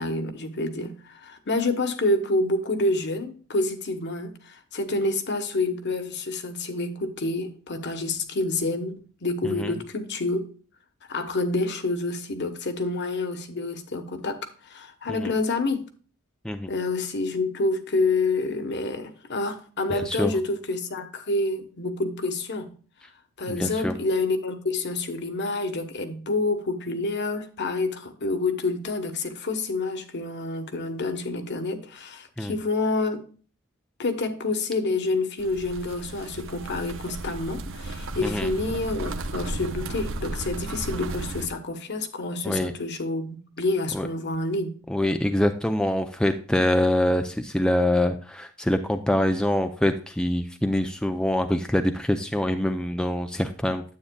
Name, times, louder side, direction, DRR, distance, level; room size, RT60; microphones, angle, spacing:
voice 1, 0.0-10.5 11.1-15.8 16.7-22.7 23.4-33.2 34.0-44.7, left 2 dB, 55° left, 1.1 m, -28 dB
voice 2, 9.4-9.7 15.1-15.3 16.4-16.7 19.9-20.3 23.5-23.9 32.4-32.5 38.2-38.5 42.4-42.7 43.9-44.1 44.9-53.8, left 1 dB, 5° left, 0.4 m, -25 dB
sound 1, 35.4-41.5, right 2 dB, 60° right, 0.8 m, -34 dB
9.6 x 8.4 x 2.2 m
head